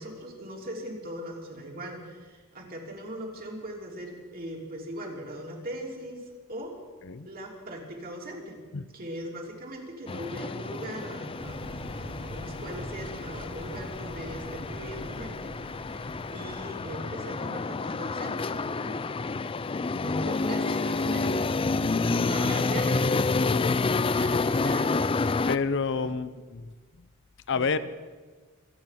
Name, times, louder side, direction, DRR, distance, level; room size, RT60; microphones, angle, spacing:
voice 1, 0.0-6.7 7.2-8.6 8.9-11.6 11.9-19.1 20.0-21.6 22.2-23.8 24.1-25.2 25.9-26.2 27.5-27.8, right 1 dB, 45° right, 0 dB, 3.2 m, -40 dB
sound 1, 10.1-25.6, left 3 dB, 25° left, 0.4 m, -29 dB
sound 2, 11.4-16.8, right 1 dB, 85° right, 4.4 m, -44 dB
voice 2, 25.5-26.7 27.5-27.8, left 5 dB, 60° left, 13 dB, 0.7 m, -28 dB
25.5 x 9.2 x 5.9 m, 1.4 s
head